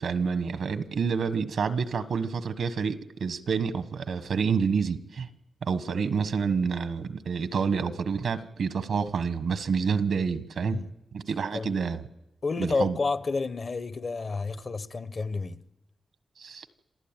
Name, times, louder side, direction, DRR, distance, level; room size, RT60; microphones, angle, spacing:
voice 1, 0.0-5.3 5.6-10.8 11.1-12.0 12.6-13.0 16.4-16.6, right 5 dB, 80° right, 1.2 m, -28 dB
voice 2, 12.4-15.6, left 4 dB, 50° left, 0.9 m, -30 dB
27.5 x 14.0 x 9.0 m
cardioid pair, 85°, 0 cm